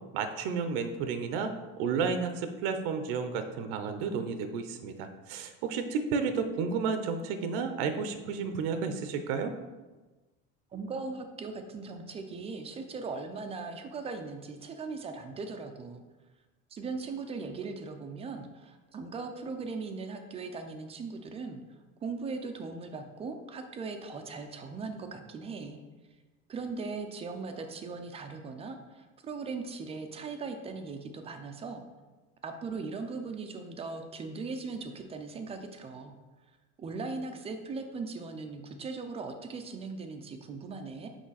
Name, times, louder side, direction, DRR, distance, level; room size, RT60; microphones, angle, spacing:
voice 1, 0.1-9.5, right 5 dB, 70° right, 8 dB, 0.7 m, -32 dB
voice 2, 10.7-16.0 16.7-21.6 22.0-25.8 26.5-31.8 32.4-36.1 36.8-41.1, right 4 dB, 20° right, 6 dB, 0.4 m, -39 dB
6.1 x 5.0 x 4.0 m, 1.2 s
cardioid pair, 155°, 30 cm